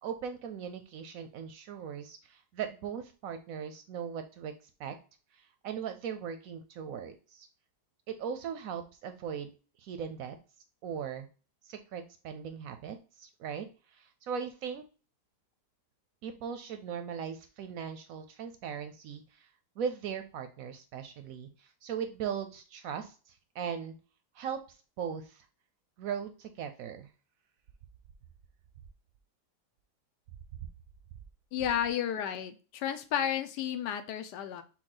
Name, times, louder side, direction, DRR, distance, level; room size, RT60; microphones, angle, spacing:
voice 1, 0.0-4.5 4.8-4.9 5.3-7.5 8.1-9.5 9.8-10.4 10.8-11.3 11.6-14.8 16.2-19.5 19.8-23.9 24.3-24.6 25.0-25.5 26.0-27.1, right 7 dB, 70° right, 7 dB, 0.9 m, -39 dB
voice 2, 31.5-34.6, left 9 dB, 85° left, 9 dB, 1.2 m, -32 dB
6.1 x 2.3 x 3.8 m, 0.35 s
omnidirectional pair, 1.8 m